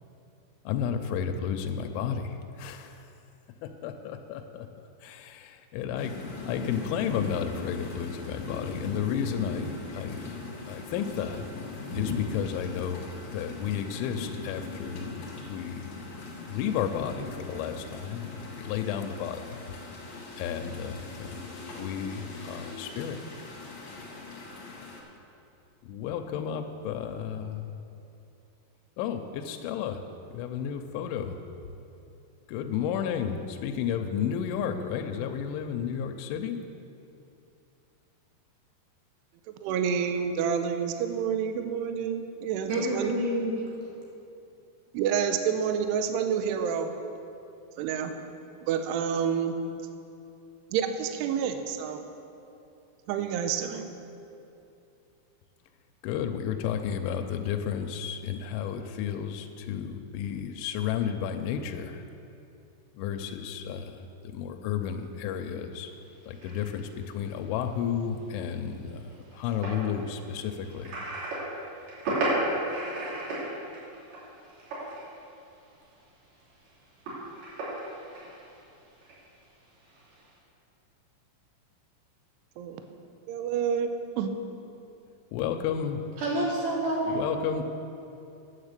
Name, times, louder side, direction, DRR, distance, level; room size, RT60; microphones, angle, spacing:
voice 1, 0.7-3.1 3.6-4.7 5.0-6.2 6.5-10.3 10.6-11.5 11.9-16.1 16.4-19.6 20.4-23.2 25.8-27.8 29.0-30.0 30.3-31.4 32.5-36.6 56.0-62.1 63.0-65.9 66.2-71.0 85.3-86.0 87.1-87.6, left 8 dB, 85° left, 5 dB, 2.9 m, -32 dB
sound 1, 6.0-25.0, left 3 dB, 65° left, 1.8 m, -39 dB
voice 2, 39.6-43.1 44.9-46.9 47.8-48.1 48.7-49.5 50.7-52.0 53.1-53.9 82.6-82.8 83.3-84.3, right 7 dB, 90° right, 7 dB, 2.4 m, -28 dB
voice 3, 42.7-43.6 86.2-87.2, right 1 dB, 70° right, -3 dB, 2.3 m, -28 dB
sound 2, 65.8-65.9 66.3-75.1 75.5-76.0 76.3-79.2 79.8-80.3, right 1 dB, 55° right, 4.6 m, -34 dB
9.6 x 7.7 x 6.6 m, 2.7 s
omnidirectional pair, 5.6 m